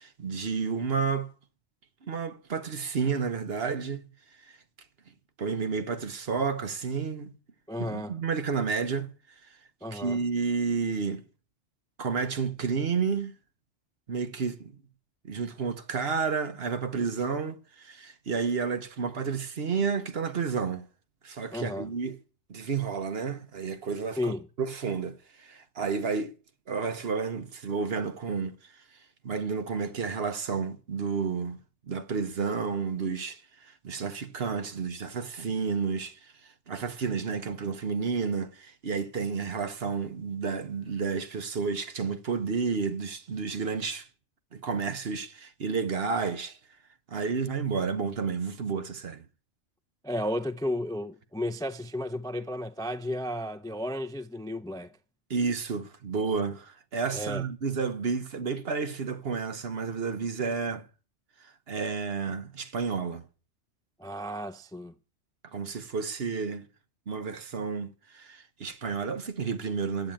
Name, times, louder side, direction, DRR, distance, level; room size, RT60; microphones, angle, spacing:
voice 1, 0.0-1.3 2.0-4.1 5.4-7.3 7.8-9.1 9.9-11.2 12.0-13.3 14.1-14.7 15.2-20.9 21.2-22.2 22.5-26.3 26.7-28.8 29.2-31.6 31.9-36.3 36.7-44.1 44.5-46.6 47.1-49.2 55.3-60.9 61.4-63.2 65.5-66.7 67.1-70.1, right 5 dB, 55° right, 1.2 m, -31 dB
voice 2, 7.7-8.2 9.8-10.3 21.5-21.9 24.2-24.5 50.0-54.9 57.1-57.4 64.0-64.9, left 1 dB, 5° left, 0.3 m, -33 dB
10.5 x 8.5 x 9.0 m
omnidirectional pair, 1.2 m